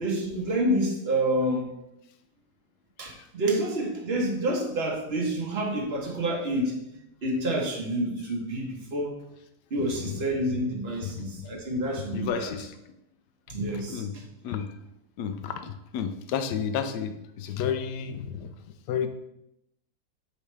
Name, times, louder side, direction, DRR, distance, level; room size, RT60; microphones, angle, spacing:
voice 1, 0.0-1.7 3.0-6.8 7.2-9.2 9.7-12.5 13.5-14.2, right 1 dB, 40° right, 0 dB, 1.4 m, -28 dB
voice 2, 11.0-11.5 12.1-12.7 13.7-14.2 14.4-14.7 15.2-18.5 18.9-19.1, left 7 dB, 80° left, 9 dB, 1.2 m, -32 dB
8.5 x 4.8 x 3.4 m, 0.83 s
omnidirectional pair, 1.8 m